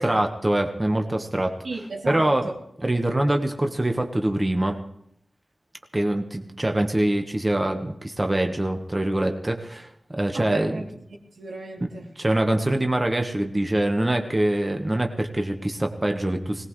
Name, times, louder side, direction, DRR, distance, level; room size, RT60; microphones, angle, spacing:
voice 1, 0.0-1.6 2.1-2.4 2.8-4.8 5.9-10.8 12.2-16.7, right 1 dB, 20° right, 4 dB, 1.3 m, -24 dB
voice 2, 1.6-2.5 10.3-10.8 11.4-12.1, right 2 dB, 90° right, -2 dB, 2.9 m, -33 dB
22.0 x 18.0 x 3.2 m, 0.72 s
wide cardioid pair, 80°, 0 cm